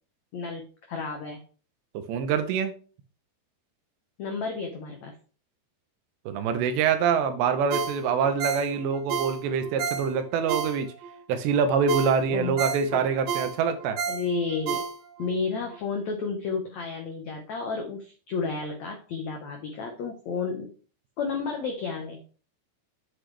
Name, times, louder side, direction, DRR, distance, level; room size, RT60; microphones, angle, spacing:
voice 1, 0.3-1.4 4.2-5.1 12.3-12.6 12.9-13.0 14.1-14.8 15.2-20.7 21.2-22.2, left 4 dB, 80° left, 3 dB, 1.6 m, -31 dB
voice 2, 2.1-2.7 6.3-10.9 11.3-14.0, right 6 dB, 80° right, 9 dB, 3.2 m, -25 dB
Ringtone, 7.7-11.2 11.5-11.6 11.9-15.3 15.7-15.8, right 7 dB, 65° right, 2.0 m, -32 dB
8.2 x 7.8 x 3.4 m, 0.40 s
omnidirectional pair, 5.0 m